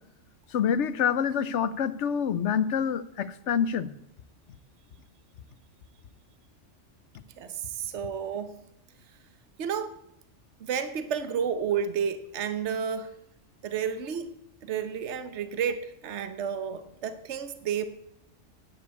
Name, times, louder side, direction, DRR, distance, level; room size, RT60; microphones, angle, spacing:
voice 1, 0.5-3.9, left 7 dB, 70° left, 16 dB, 1.0 m, -26 dB
voice 2, 7.4-8.6 9.6-10.0 10.6-13.1 13.6-14.3 14.6-17.9, right 7 dB, 65° right, 11 dB, 1.2 m, -31 dB
9.8 x 8.6 x 8.2 m, 0.78 s
omnidirectional pair, 1.3 m